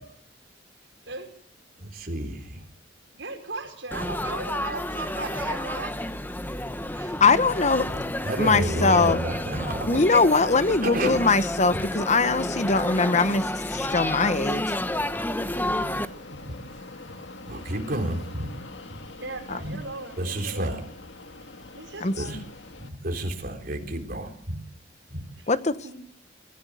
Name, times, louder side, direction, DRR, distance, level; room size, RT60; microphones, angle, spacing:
voice 1, 1.8-2.7 8.2-10.0 10.7-11.2 11.7-11.8 16.4-16.6 17.0-17.2 17.5-18.5 18.9-19.0 19.6-19.7 20.2-20.8 22.2-22.4 22.8-24.6 25.1-25.2, right 1 dB, 50° right, 3.8 m, -30 dB
voice 2, 3.1-6.1 6.9-7.2 16.9-17.4 19.2-20.8 21.7-22.4 25.4-25.5 25.8-25.9, right 3 dB, 80° right, 5.0 m, -37 dB
Laughter / Chatter / Crowd, 3.9-16.1, left 1 dB, 10° left, 1.1 m, -30 dB
voice 3, 7.2-7.9 8.4-9.2 9.9-14.7 19.5-19.6 22.0-22.4 25.5-25.8, left 4 dB, 40° left, 1.1 m, -22 dB
Fixed-wing aircraft airplane, 13.8-22.9, left 2 dB, 85° left, 1.9 m, -44 dB
23.5 x 15.5 x 9.4 m
head